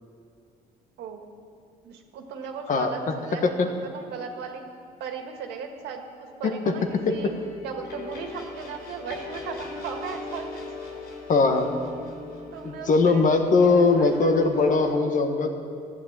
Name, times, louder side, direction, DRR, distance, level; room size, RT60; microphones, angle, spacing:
voice 1, 1.0-1.3 1.8-4.6 5.0-7.3 7.6-10.6 12.5-14.5, right 6 dB, 85° right, 3 dB, 1.9 m, -37 dB
voice 2, 6.4-6.8 7.1-7.2 11.3-11.7 12.6-15.5, left 3 dB, 50° left, 6 dB, 1.6 m, -21 dB
sound 1, 6.8-14.9, left 3 dB, 80° left, 4.8 m, -39 dB
14.5 x 8.9 x 8.8 m, 2.4 s
cardioid pair, 110°, 17 cm